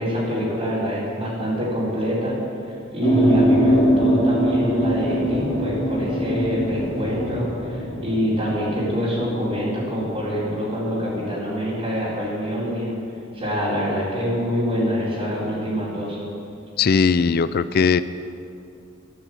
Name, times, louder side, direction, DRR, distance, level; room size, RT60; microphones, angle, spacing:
voice 1, 0.0-2.4 2.6-12.9 13.3-16.2, equal, 30° right, -8 dB, 4.6 m, -25 dB
sound 1, 3.0-10.5, equal, 30° left, 3.9 m, -22 dB
voice 2, 16.8-18.0, left 5 dB, 55° left, 15 dB, 0.4 m, -18 dB
13.5 x 11.5 x 8.1 m, 2.5 s
head